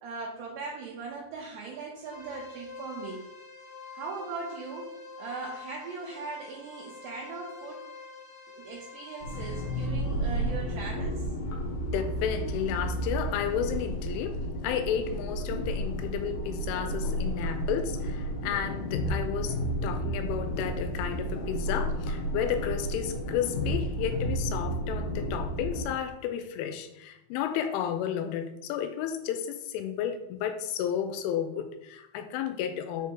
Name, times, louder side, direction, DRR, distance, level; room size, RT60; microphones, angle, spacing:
voice 1, 0.0-3.3 3.9-7.8 8.6-11.3, right 4 dB, 80° right, 2.6 m, -39 dB
sound 1, 2.0-9.8, left 4 dB, 50° left, 1.4 m, -46 dB
sound 2, 9.2-25.8, equal, 65° left, 2.3 m, -32 dB
voice 2, 11.9-33.1, left 9 dB, 85° left, 3.0 m, -32 dB
7.1 x 3.5 x 4.5 m
omnidirectional pair, 5.7 m